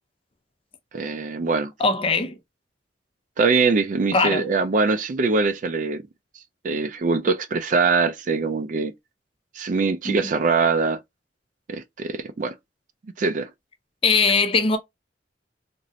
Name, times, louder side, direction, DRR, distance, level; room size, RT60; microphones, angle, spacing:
voice 1, 0.9-1.7 3.4-6.0 6.6-8.9 9.6-11.0 11.7-12.5 13.2-13.5, right 4 dB, 45° right, 0.4 m, -22 dB
voice 2, 1.8-2.3 4.1-4.4 10.1-10.2 14.0-14.8, left 4 dB, 30° left, 0.4 m, -20 dB
3.1 x 2.5 x 2.6 m
head